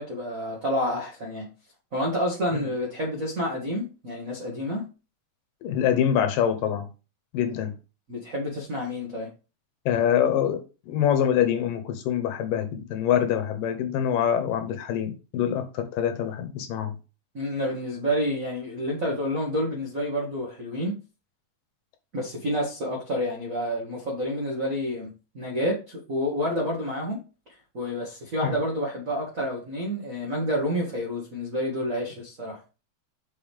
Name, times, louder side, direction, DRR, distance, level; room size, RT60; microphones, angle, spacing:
voice 1, 0.0-1.5 1.9-4.9 8.1-9.3 17.3-21.0 22.1-25.1 25.3-27.2 27.7-32.6, equal, 35° right, 1.3 m, -29 dB
voice 2, 5.6-6.8 7.3-7.7 9.9-17.0 28.4-28.6, left 9 dB, 75° left, 2.5 m, -25 dB
5.6 x 5.5 x 3.5 m
omnidirectional pair, 4.1 m